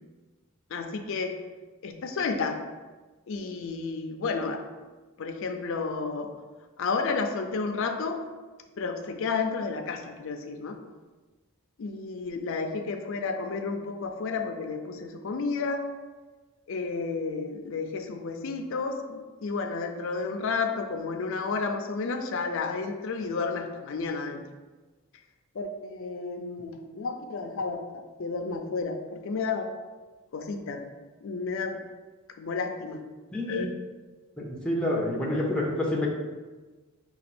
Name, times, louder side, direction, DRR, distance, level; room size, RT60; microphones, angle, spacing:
voice 1, 0.7-1.3 1.8-2.6 3.3-4.6 5.2-6.3 6.8-8.2 8.8-10.8 11.8-15.8 16.7-24.4 25.6-29.7 30.3-30.8 31.2-31.8 32.4-33.0 33.5-33.7, left 4 dB, 60° left, 4 dB, 0.4 m, -31 dB
voice 2, 33.3-33.7 34.4-36.1, left 1 dB, 5° left, -3 dB, 0.5 m, -28 dB
5.2 x 2.3 x 4.2 m, 1.3 s
head